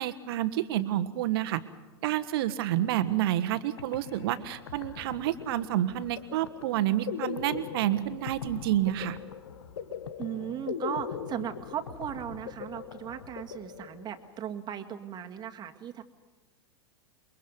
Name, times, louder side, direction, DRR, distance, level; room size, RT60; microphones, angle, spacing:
voice 1, 0.0-1.6 2.0-9.2, right 13 dB, 60° right, 13 dB, 1.4 m, -29 dB
sound 1, 3.5-3.6 3.8-14.4, left 7 dB, 70° left, 1.3 m, -40 dB
voice 2, 10.2-16.0, right 9 dB, 30° right, 6 dB, 2.0 m, -37 dB
28.5 x 22.5 x 5.4 m, 1.3 s
hypercardioid pair, 95°, 14 cm